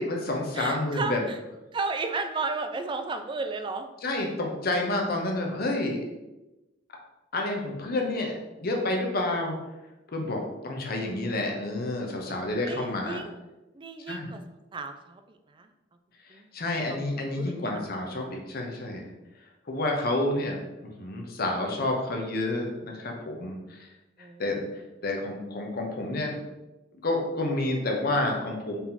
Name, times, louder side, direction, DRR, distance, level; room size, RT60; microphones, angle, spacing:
voice 1, 0.0-1.2 4.0-6.0 7.3-8.3 8.6-9.5 10.1-13.2 14.1-14.3 16.5-19.1 19.7-23.9 24.4-24.7 25.0-26.4 27.0-28.8, left 2 dB, 55° left, 1 dB, 0.8 m, -29 dB
voice 2, 0.5-1.4 1.7-3.9 12.6-13.4 13.7-15.7 16.3-16.5 16.9-17.0 17.3-17.8 24.2-24.5, right 3 dB, 25° right, 7 dB, 0.3 m, -34 dB
4.1 x 2.9 x 3.8 m, 1.0 s
head